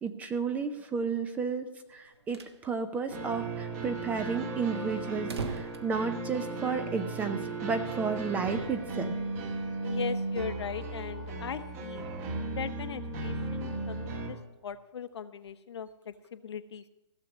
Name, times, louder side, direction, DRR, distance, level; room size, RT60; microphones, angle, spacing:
voice 1, 0.0-9.1, right 5 dB, 10° right, 9 dB, 0.5 m, -32 dB
sound 1, 2.0-2.6 2.9-3.0 3.2-3.3 3.8-6.8, right 4 dB, 60° right, 1.2 m, -42 dB
sound 2, 3.1-14.3, right 3 dB, 30° right, 1.6 m, -36 dB
voice 2, 9.8-12.1 12.5-14.4 14.6-16.9, left 7 dB, 60° left, 11 dB, 0.9 m, -39 dB
16.0 x 7.0 x 6.3 m, 1.0 s
figure-of-eight pair, 140°, 16 cm